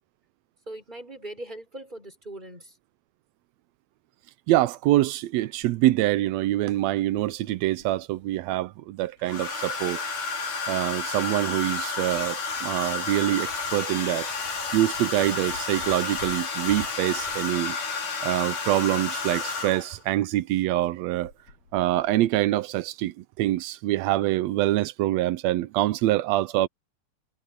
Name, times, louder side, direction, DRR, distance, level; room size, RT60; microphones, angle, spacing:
voice 1, 0.7-2.7, right 1 dB, 15° right, 6.2 m, -40 dB
voice 2, 4.5-10.0 10.7-14.3 14.7-17.8 18.2-21.3 21.7-26.7, right 15 dB, 90° right, 1.5 m, -25 dB
Domestic sounds home sounds, 5.6-5.7 7.2-7.8 9.2-20.0 21.2-21.5 21.8-22.1, left 4 dB, 75° left, 6.3 m, -31 dB
omnidirectional pair, 3.7 m